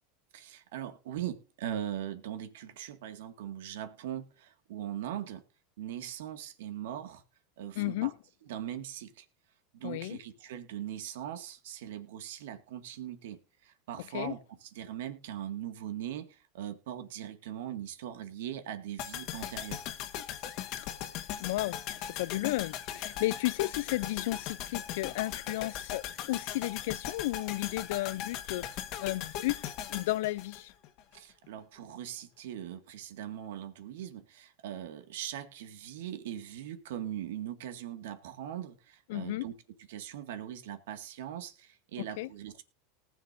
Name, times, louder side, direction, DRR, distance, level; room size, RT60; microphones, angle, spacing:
voice 1, 0.3-5.4 5.8-7.2 7.6-8.1 8.5-9.3 9.7-19.9 31.1-39.5 39.8-42.6, right 11 dB, 80° right, 2.0 m, -40 dB
voice 2, 7.8-8.1 9.8-10.2 14.1-14.3 21.4-28.6 29.0-30.7 39.1-39.4 42.0-42.3, left 18 dB, 70° left, 0.5 m, -33 dB
sound 1, 19.0-31.2 31.4-31.5, left 10 dB, 50° left, 1.5 m, -39 dB
19.0 x 7.3 x 2.6 m
supercardioid pair, 125°, 0 cm